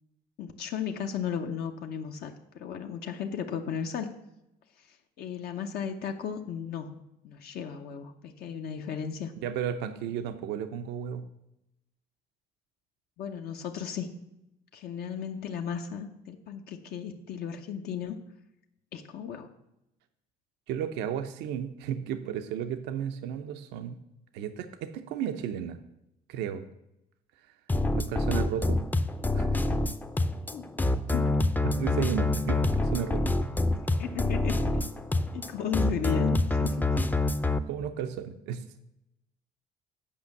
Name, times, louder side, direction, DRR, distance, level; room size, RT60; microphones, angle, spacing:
voice 1, 0.4-4.1 4.8-9.3 13.2-14.1 14.7-18.2 18.9-19.5 30.5-30.7 31.1-31.3 34.0-35.1 35.3-36.9, left 7 dB, 70° left, 4 dB, 0.8 m, -35 dB
voice 2, 9.4-11.2 20.7-24.0 24.3-25.8 26.3-26.6 27.9-28.8 29.3-29.8 31.6-33.2 37.7-38.6, right 8 dB, 90° right, 8 dB, 0.6 m, -33 dB
sound 1, 27.7-37.6, left 2 dB, 10° left, 0.5 m, -26 dB
8.5 x 5.3 x 7.1 m, 0.86 s
cardioid pair, 110°, 17 cm